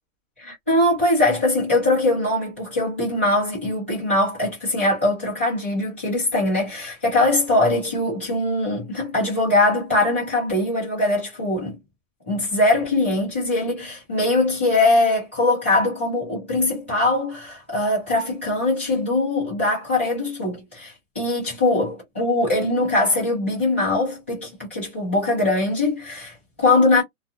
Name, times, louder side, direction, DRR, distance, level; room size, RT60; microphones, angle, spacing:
voice 1, 0.4-11.8 12.3-27.0, left 2 dB, 10° left, 0.6 m, -21 dB
2.5 x 2.3 x 2.4 m
hypercardioid pair, 180°, 44 cm